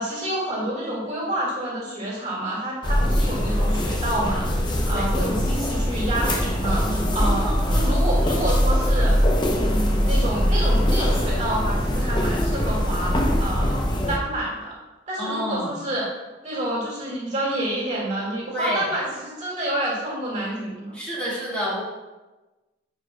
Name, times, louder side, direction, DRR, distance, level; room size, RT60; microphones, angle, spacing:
voice 1, 0.0-9.2 9.5-13.1 13.4-13.8 14.1-14.7 15.1-16.0 16.4-21.0, right 1 dB, 40° right, -5 dB, 1.9 m, -28 dB
sound 1, 2.8-14.2, equal, 25° left, 0.7 m, -22 dB
voice 2, 7.2-7.7 15.2-15.7 18.4-18.9 20.9-21.8, equal, 5° left, -8 dB, 1.7 m, -29 dB
10.0 x 4.8 x 2.2 m, 1.1 s
head